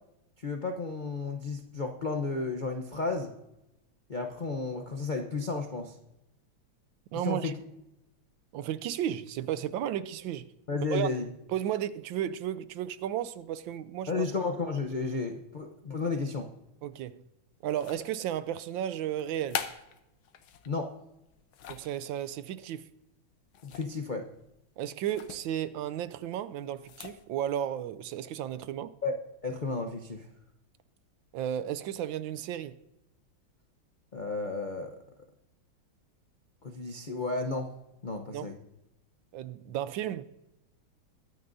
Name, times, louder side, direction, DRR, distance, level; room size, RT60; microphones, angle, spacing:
voice 1, 0.4-3.3 4.1-6.0 7.2-7.6 10.7-11.2 14.1-16.5 20.7-21.0 23.6-24.3 29.0-29.1 29.4-30.3 34.1-35.0 36.6-37.7 38.0-38.6, left 3 dB, 50° left, 0.5 m, -33 dB
voice 2, 7.1-7.5 8.5-10.5 10.9-11.1 11.5-14.3 16.8-17.2 17.6-19.6 21.7-22.9 24.8-28.9 31.3-32.8 38.3-38.5 39.3-40.2, right 11 dB, 75° right, 1.3 m, -33 dB
sound 1, 17.7-18.3 19.2-20.7 21.3-22.0 23.5-24.1 24.3-24.5 25.1-25.4 26.7-27.2, left 8 dB, 80° left, 1.7 m, -41 dB
22.5 x 9.4 x 2.7 m
omnidirectional pair, 2.2 m